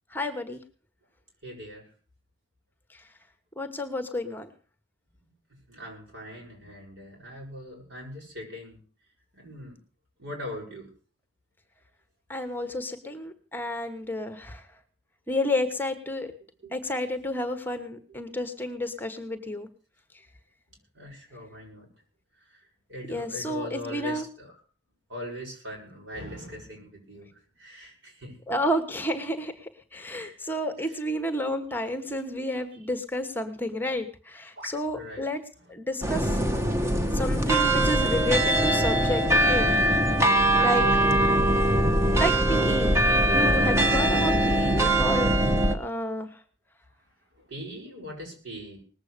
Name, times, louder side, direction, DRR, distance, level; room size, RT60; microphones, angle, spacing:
voice 1, 0.1-0.6 2.9-3.0 3.6-4.5 12.3-14.7 15.3-16.3 16.7-19.7 23.1-24.3 28.5-35.4 35.7-36.4 37.1-39.7 40.5-40.8 42.2-43.0 43.2-45.3 45.7-46.4, left 1 dB, 10° left, 7 dB, 1.2 m, -30 dB
voice 2, 1.4-1.8 5.7-8.8 9.3-9.8 10.2-10.9 16.6-16.7 20.9-21.9 22.9-24.5 25.1-27.3 27.6-28.3 30.2-30.4 34.6-35.3 40.5-41.5 47.4-48.8, left 1 dB, 80° right, 0 dB, 7.2 m, -40 dB
sound 1, 36.0-45.7, right 1 dB, 15° right, 1.0 m, -22 dB
19.5 x 8.1 x 6.7 m, 0.40 s
head